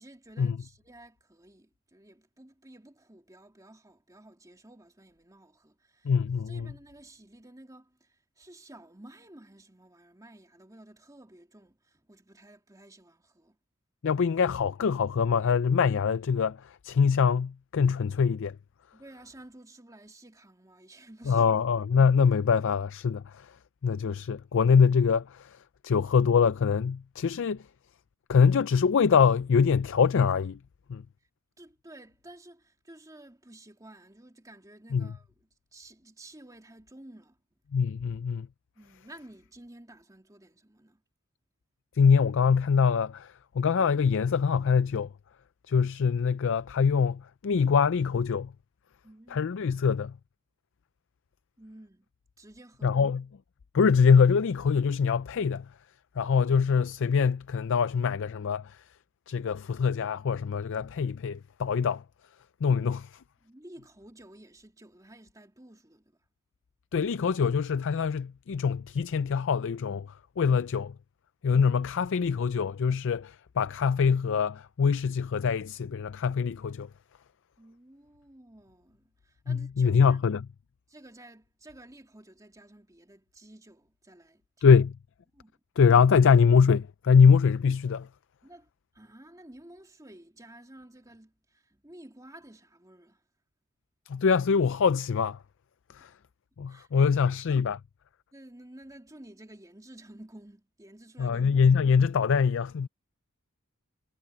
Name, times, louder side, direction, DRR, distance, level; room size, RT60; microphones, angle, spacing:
voice 1, 0.0-6.1 6.4-13.6 18.9-21.6 31.6-37.4 38.7-41.0 49.0-49.5 51.6-52.1 52.4-53.0 63.4-66.2 77.6-80.2 80.9-84.7 85.3-85.6 88.4-93.2 96.7-97.1 98.3-101.6, right 1 dB, 15° right, 2.6 m, -52 dB
voice 2, 6.0-6.7 14.0-18.6 21.3-23.5 23.8-25.6 25.8-27.6 28.3-30.6 30.9-31.0 34.9-35.1 37.7-38.5 42.0-45.1 45.7-48.5 49.3-50.1 52.8-53.2 53.7-55.7 56.2-58.8 59.3-62.0 62.6-63.1 66.9-70.1 70.4-70.9 71.4-76.9 79.5-80.5 84.6-85.0 85.8-88.1 94.1-95.4 95.9-96.1 96.6-97.8 101.2-102.9, left 6 dB, 60° left, 0.4 m, -24 dB
head